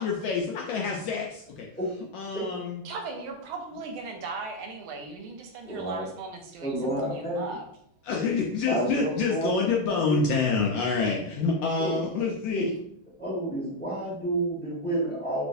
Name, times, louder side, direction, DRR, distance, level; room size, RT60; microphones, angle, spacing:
voice 1, 0.0-1.7 2.1-2.8 8.0-12.7, left 4 dB, 75° left, -1 dB, 1.1 m, -27 dB
voice 2, 2.8-7.7, right 4 dB, 75° right, 3 dB, 1.3 m, -38 dB
voice 3, 5.6-6.0 6.6-7.4 8.6-9.5 10.1-10.2 11.8-12.0 12.6-12.7 13.2-15.5, right 1 dB, 10° left, -8 dB, 0.6 m, -30 dB
3.1 x 3.1 x 2.6 m, 0.68 s
omnidirectional pair, 2.4 m